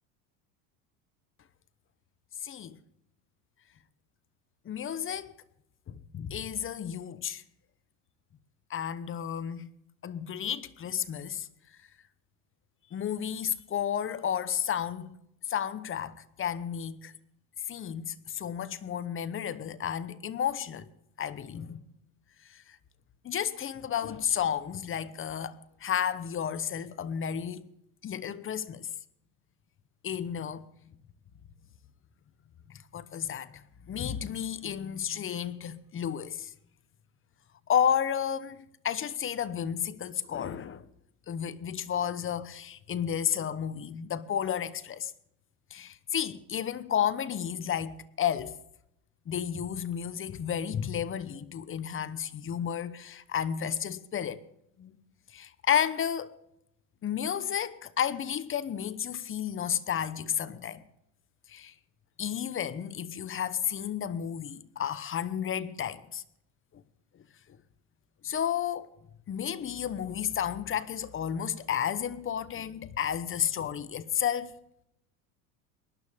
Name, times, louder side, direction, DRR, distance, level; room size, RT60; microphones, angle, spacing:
voice 1, 2.4-2.8 4.6-5.3 5.9-7.4 8.7-9.7 10.0-11.5 12.9-15.2 15.5-17.1 17.7-20.9 21.2-21.8 22.5-22.8 23.2-27.6 28.0-28.9 30.0-30.7 32.7-36.5 37.7-40.8 41.3-45.1 45.7-48.6 49.3-54.4 54.8-54.9 55.3-56.4 57.0-60.8 61.5-61.7 62.2-66.2 68.2-68.9 69.3-74.5, left 9 dB, 30° left, 0.9 m, -32 dB
20.0 x 12.0 x 3.6 m
supercardioid pair, 105°, 43 cm